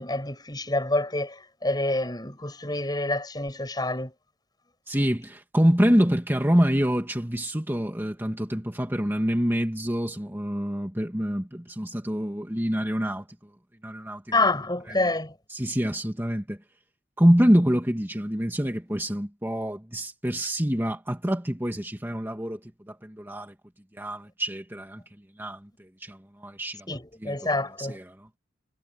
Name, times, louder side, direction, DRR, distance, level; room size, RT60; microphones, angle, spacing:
voice 1, 0.0-4.1 14.3-15.4 26.9-28.0, left 2 dB, 20° left, 7.7 m, -27 dB
voice 2, 4.9-13.2 13.8-14.4 14.9-15.0 15.5-16.6 17.2-22.6 22.9-23.5 24.0-25.0 25.4-26.9 27.2-27.3 27.8-28.3, equal, 10° right, 2.2 m, -26 dB
head